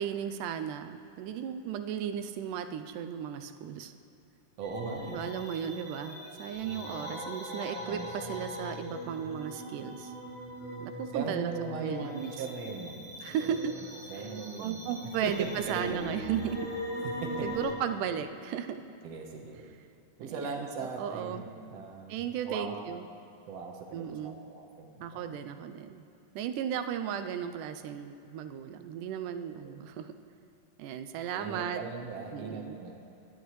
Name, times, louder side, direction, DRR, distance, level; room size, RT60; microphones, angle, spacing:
voice 1, 0.0-3.9 5.1-10.1 10.8-11.5 11.8-12.3 13.2-13.7 14.1-14.3 14.6-16.7 17.4-18.8 20.2-21.4 22.1-23.0 23.9-24.5 25.0-26.1 26.4-30.2 30.8-31.8 32.3-32.8, right 9 dB, 80° right, 9 dB, 2.0 m, -35 dB
sound 1, 4.6-17.7, equal, 25° right, 0.7 m, -41 dB
voice 2, 4.6-5.2 7.9-8.1 11.1-13.8 14.1-14.9 15.2-16.2 17.0-17.5 19.0-19.6 20.2-22.8 23.5-25.4 29.5-29.8 31.3-33.0, right 4 dB, 65° right, 2 dB, 1.8 m, -39 dB
17.5 x 11.5 x 3.1 m, 2.7 s
omnidirectional pair, 3.9 m